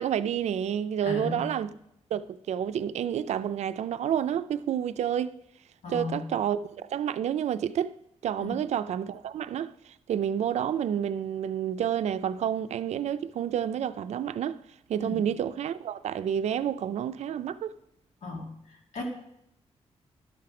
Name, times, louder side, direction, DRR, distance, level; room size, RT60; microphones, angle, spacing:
voice 1, 0.0-1.7 2.1-5.4 5.9-7.9 8.2-14.6 14.9-17.7, right 9 dB, 75° right, 0.4 m, -29 dB
voice 2, 1.0-1.5 5.8-6.2 8.4-8.6 15.0-15.2 18.2-19.0, left 3 dB, 85° left, 2.1 m, -36 dB
11.5 x 5.9 x 4.8 m
wide cardioid pair, 180°, 12 cm